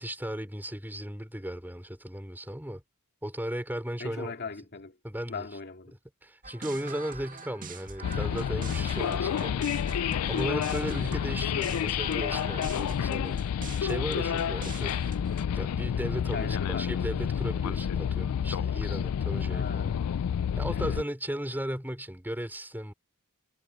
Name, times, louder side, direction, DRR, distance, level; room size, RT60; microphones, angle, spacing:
voice 1, 0.0-2.8 3.2-4.3 5.0-5.5 6.2-9.7 10.3-15.0 15.5-19.9 20.6-22.9, right 1 dB, 10° right, 5.0 m, -36 dB
voice 2, 4.0-5.0 5.3-5.9 10.4-10.6 16.3-16.9 19.5-20.1 20.7-21.0, left 4 dB, 50° left, 2.5 m, -39 dB
sound 1, 6.4-15.5, right 4 dB, 40° right, 2.1 m, -43 dB
sound 2, 8.0-21.0, left 8 dB, 90° left, 0.3 m, -29 dB
head